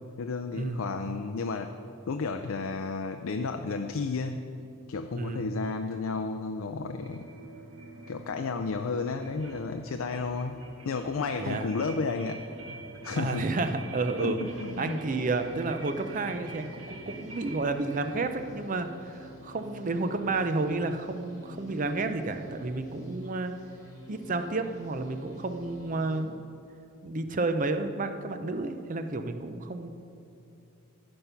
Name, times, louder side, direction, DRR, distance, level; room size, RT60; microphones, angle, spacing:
voice 1, 0.2-1.8 2.1-4.4 4.9-7.3 8.1-10.6 10.8-12.4 13.0-13.6 14.2-15.0, left 4 dB, 70° left, 6 dB, 0.4 m, -32 dB
voice 2, 5.2-5.6 11.4-11.7 13.1-14.4 14.8-23.5 24.1-26.4 27.0-29.9, right 3 dB, 40° right, 8 dB, 0.5 m, -31 dB
sound 1, 7.0-20.9, right 2 dB, 60° right, 1.4 m, -46 dB
sound 2, 14.5-26.2, equal, 15° left, 1.7 m, -49 dB
14.0 x 5.3 x 5.7 m, 2.7 s
head